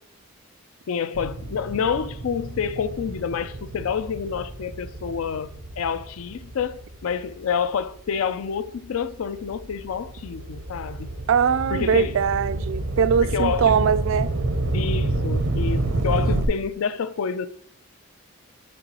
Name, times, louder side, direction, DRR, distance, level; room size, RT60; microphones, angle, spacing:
voice 1, 0.9-5.5 5.8-11.1 11.7-12.2 13.2-13.9 14.7-17.5, left 6 dB, 80° left, 0.4 m, -28 dB
sound 1, 1.1-7.9 8.5-16.4, right 2 dB, 90° right, 0.8 m, -29 dB
voice 2, 11.3-14.3, right 6 dB, 70° right, 0.3 m, -21 dB
7.7 x 5.3 x 2.9 m
head